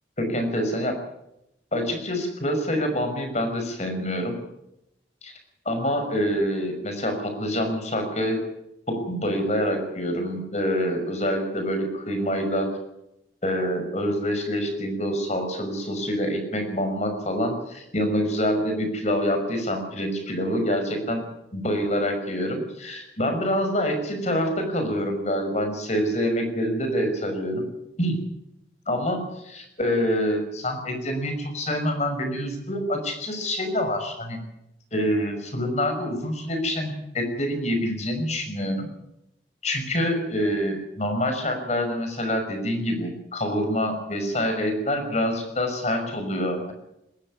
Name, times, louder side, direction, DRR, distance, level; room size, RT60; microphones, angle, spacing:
voice 1, 0.2-1.0 1.7-4.3 5.2-5.3 5.7-8.4 8.9-12.7 13.4-21.2 21.5-27.7 28.0-28.2 28.9-34.4 34.9-38.9 39.6-46.7, equal, 40° left, 6 dB, 5.8 m, -26 dB
21.0 x 15.0 x 9.8 m, 0.84 s
head